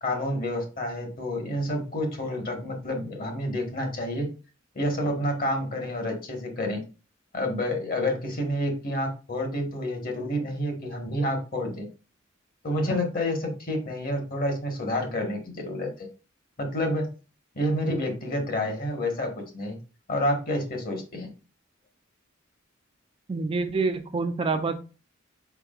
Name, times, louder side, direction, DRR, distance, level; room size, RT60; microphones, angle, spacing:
voice 1, 0.0-4.3 4.7-6.8 7.3-11.9 12.6-16.1 16.6-17.1 17.5-19.8 20.1-21.3, left 1 dB, 50° left, 3 dB, 1.3 m, -29 dB
voice 2, 23.3-24.8, right 4 dB, 25° right, 7 dB, 0.4 m, -27 dB
4.7 x 4.5 x 2.4 m, 0.34 s
head